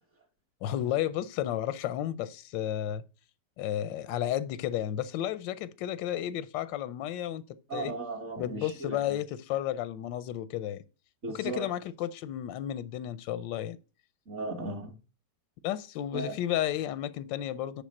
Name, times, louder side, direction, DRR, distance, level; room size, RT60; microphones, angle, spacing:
voice 1, 0.6-3.0 3.6-7.4 7.7-7.9 8.4-10.8 11.3-13.8 15.6-17.8, left 11 dB, 90° left, 1.3 m, -32 dB
voice 2, 7.7-9.2 11.2-11.7 14.3-14.9 16.1-16.3, right 2 dB, 45° right, 1.7 m, -36 dB
9.8 x 3.5 x 6.3 m
omnidirectional pair, 1.9 m